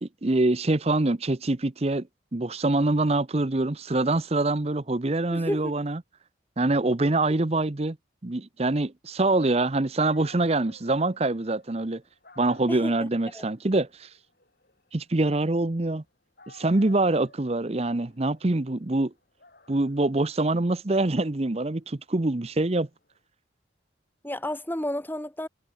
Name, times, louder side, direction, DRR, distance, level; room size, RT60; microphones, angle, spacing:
voice 1, 0.0-2.1 2.3-6.0 6.6-8.0 8.2-12.0 12.4-14.1 14.9-16.0 16.5-19.1 19.7-22.9, right 2 dB, 30° right, 0.7 m, -25 dB
voice 2, 5.3-5.7 12.7-13.4 24.2-25.5, left 1 dB, 10° left, 1.6 m, -32 dB
Dog, 9.7-9.8 10.0-16.0 16.4-23.2, left 3 dB, 50° left, 7.1 m, -55 dB
head